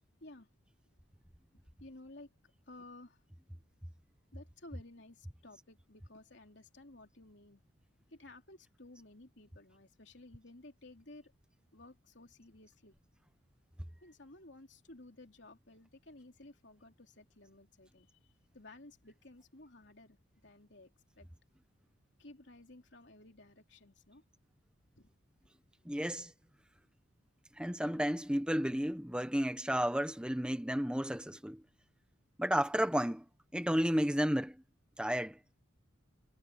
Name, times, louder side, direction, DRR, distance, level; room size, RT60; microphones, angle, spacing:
voice 1, 1.8-2.3 2.7-3.2 4.3-7.6 8.1-11.3 11.7-12.9 14.0-20.2 20.4-20.9 21.2-21.3 22.2-24.2 25.0-25.1, left 2 dB, 60° left, 3.5 m, -55 dB
voice 2, 25.8-26.3 27.6-31.6 32.4-33.2 33.5-34.6 35.0-35.4, equal, 5° right, 1.3 m, -32 dB
head